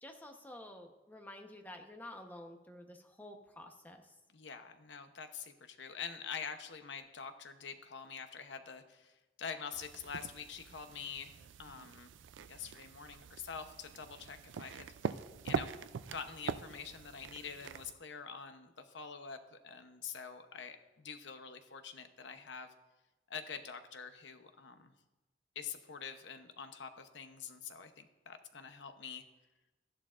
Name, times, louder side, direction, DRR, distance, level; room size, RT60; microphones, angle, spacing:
voice 1, 0.0-4.1, left 1 dB, 10° left, 4 dB, 1.0 m, -50 dB
voice 2, 4.3-12.1 12.5-15.7 16.1-22.7 23.3-24.9 25.5-29.2, left 6 dB, 70° left, 7 dB, 0.9 m, -46 dB
sound 1, 9.7-17.9, right 6 dB, 85° right, 0.4 m, -43 dB
14.0 x 11.0 x 2.5 m, 1.1 s
head